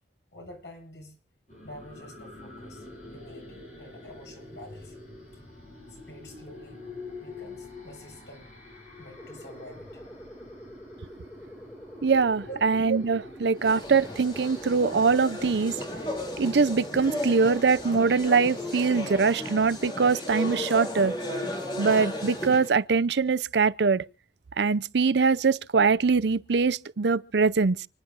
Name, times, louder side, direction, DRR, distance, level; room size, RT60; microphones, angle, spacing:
voice 1, 0.3-1.2 1.6-5.0 5.9-6.8 7.2-8.5 9.0-10.4 12.4-12.6, equal, 75° left, 7.6 m, -47 dB
sound 1, 1.5-18.7, left 2 dB, 40° left, 7.7 m, -47 dB
sound 2, 9.2-19.2, equal, 5° left, 2.2 m, -46 dB
voice 2, 12.0-15.7 16.4-21.1 21.8-24.1 24.6-27.9, right 5 dB, 70° right, 0.5 m, -23 dB
sound 3, 13.6-22.7, left 1 dB, 25° left, 2.9 m, -35 dB
29.5 x 10.5 x 2.5 m
head